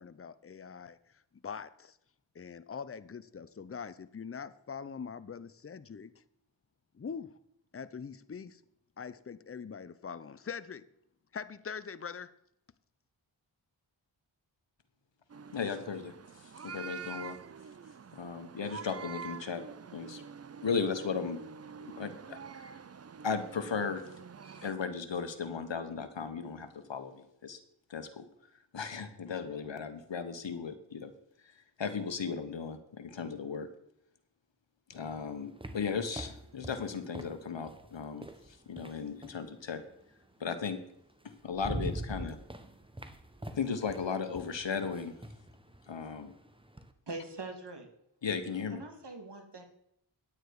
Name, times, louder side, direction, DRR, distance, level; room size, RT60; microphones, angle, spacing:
voice 1, 0.0-2.0 2.3-6.2 6.9-7.4 7.7-8.6 9.0-10.9 11.3-12.3, left 6 dB, 30° left, 15 dB, 0.6 m, -43 dB
sound 1, 15.3-24.7, right 6 dB, 30° right, 0.5 m, -47 dB
voice 2, 15.5-17.4 18.1-19.6 19.9-20.2 20.6-21.4 21.8-22.8 23.2-24.1 24.4-27.6 27.9-28.3 28.7-31.1 31.4-33.7 34.9-39.8 40.4-40.8 41.2-42.4 43.5-45.2 45.9-46.4 48.2-48.8, left 5 dB, 65° left, 9 dB, 1.3 m, -36 dB
sound 2, 34.9-39.5 40.8-40.9 41.3-46.9, right 1 dB, 10° right, 1.0 m, -44 dB
voice 3, 47.1-47.9 48.7-49.6, right 3 dB, 55° right, 5 dB, 2.1 m, -42 dB
9.9 x 9.0 x 4.8 m, 0.75 s
cardioid pair, 45°, 48 cm